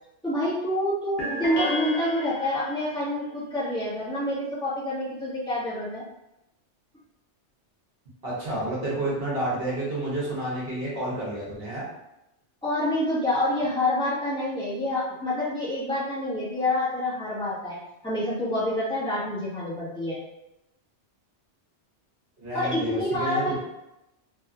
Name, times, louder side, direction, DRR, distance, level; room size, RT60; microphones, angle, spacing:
voice 1, 0.2-6.0 12.6-17.8 18.0-20.2 22.5-23.6, left 1 dB, 5° left, -11 dB, 1.0 m, -27 dB
sound 1, 1.2-2.9, left 1 dB, 65° left, 1.0 m, -32 dB
voice 2, 8.2-11.9 22.4-23.6, right 1 dB, 60° right, -6 dB, 1.1 m, -30 dB
2.8 x 2.3 x 2.4 m, 0.89 s
omnidirectional pair, 1.2 m